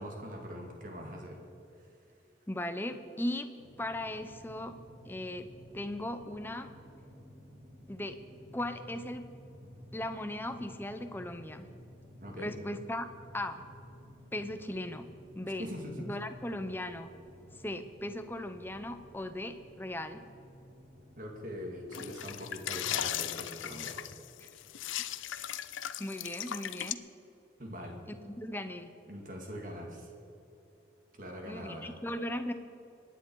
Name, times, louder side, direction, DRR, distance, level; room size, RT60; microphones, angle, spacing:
voice 1, 0.0-1.4 12.2-12.5 15.4-16.1 21.2-24.0 27.6-28.0 29.1-30.1 31.2-31.9, equal, 45° right, 1 dB, 2.2 m, -42 dB
voice 2, 2.5-3.5 3.8-4.8 5.1-5.5 5.7-6.7 7.9-8.2 8.5-9.3 9.9-11.7 12.4-13.1 13.3-13.6 14.3-15.1 15.3-15.7 16.0-17.1 17.6-20.2 26.0-27.0 28.2-28.9 31.5-32.5, left 1 dB, 10° left, 8 dB, 0.7 m, -37 dB
sound 1, 3.6-22.4, equal, 75° right, 4.6 m, -54 dB
sound 2, 21.9-26.9, left 11 dB, 85° left, 0.5 m, -37 dB
24.5 x 10.0 x 4.7 m, 2.9 s
head